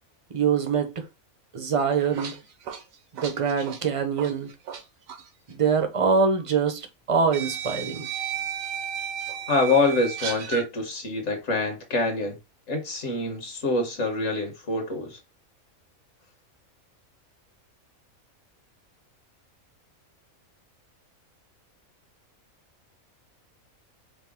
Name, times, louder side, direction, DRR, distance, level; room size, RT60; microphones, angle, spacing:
voice 1, 0.3-1.0 1.5-2.4 3.1-4.5 5.5-8.1, right 5 dB, 35° right, 0.5 m, -24 dB
sound 1, 1.8-4.8 5.1-5.3 6.4-6.5 7.3-10.7, right 8 dB, 75° right, 1.1 m, -34 dB
voice 2, 9.5-12.4 12.7-15.2, left 2 dB, 55° left, 1.4 m, -25 dB
5.0 x 2.1 x 3.5 m
omnidirectional pair, 1.5 m